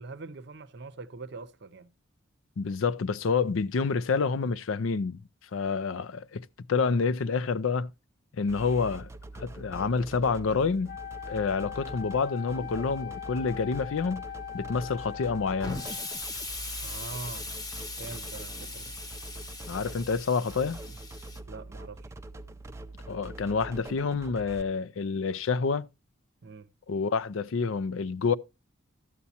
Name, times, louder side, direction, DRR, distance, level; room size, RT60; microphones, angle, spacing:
voice 1, 0.0-1.9 16.8-17.5 18.0-18.9 21.5-22.1 26.4-26.7, right 3 dB, 55° right, 0.6 m, -43 dB
voice 2, 2.6-5.2 5.5-7.9 8.4-9.1 9.3-11.0 11.3-14.2 14.5-15.8 19.7-20.8 23.1-25.9 26.9-28.3, left 5 dB, 80° left, 0.5 m, -28 dB
sound 1, 8.5-24.6, right 2 dB, 15° right, 0.4 m, -44 dB
Wind instrument woodwind instrument, 10.9-16.3, left 11 dB, 45° left, 0.7 m, -41 dB
Explosion, 15.6-21.4, left 2 dB, 20° left, 0.9 m, -39 dB
12.5 x 8.3 x 2.8 m
head